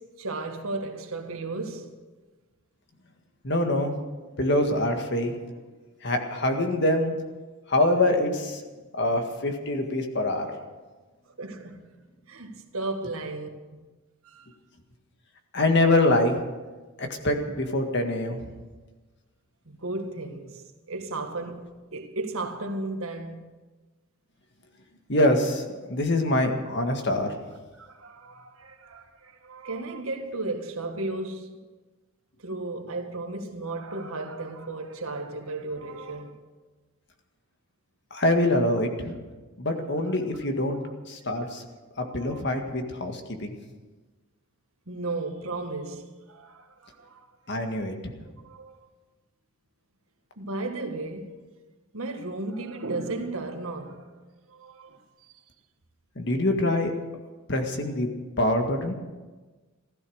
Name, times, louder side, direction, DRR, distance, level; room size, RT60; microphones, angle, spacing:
voice 1, 0.0-1.9 11.4-11.9 12.3-13.8 14.2-14.6 19.6-23.5 27.8-31.6 32.4-36.4 40.0-40.2 40.8-40.9 41.3-41.5 42.0-42.5 44.9-47.3 47.6-47.8 48.4-48.8 50.4-51.5 51.9-54.1 54.5-55.0, right 2 dB, 85° right, 1.7 m, -35 dB
voice 2, 3.4-3.9 4.4-5.4 6.0-7.1 7.7-8.6 8.9-10.5 15.5-16.4 17.0-18.4 25.1-27.3 38.1-39.2 39.6-40.8 41.1-41.6 42.0-43.5 47.5-48.1 56.2-56.9 57.5-58.1 58.4-58.9, left 1 dB, 55° left, 1.8 m, -24 dB
15.5 x 13.5 x 6.4 m
head